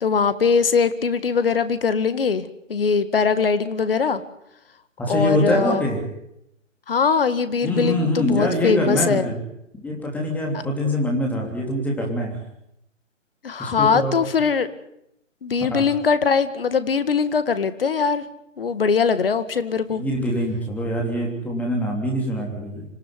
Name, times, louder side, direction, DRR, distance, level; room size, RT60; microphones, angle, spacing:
voice 1, 0.0-4.2 5.1-5.9 6.9-9.3 13.4-14.7 15.4-18.2 18.6-20.0, left 5 dB, 45° left, 13 dB, 1.9 m, -21 dB
voice 2, 5.0-6.0 7.6-9.4 9.8-12.4 13.6-14.1 15.7-15.8 19.9-22.8, left 1 dB, 5° left, -1 dB, 3.3 m, -24 dB
26.5 x 15.0 x 9.5 m, 0.81 s
figure-of-eight pair, 140°, 38 cm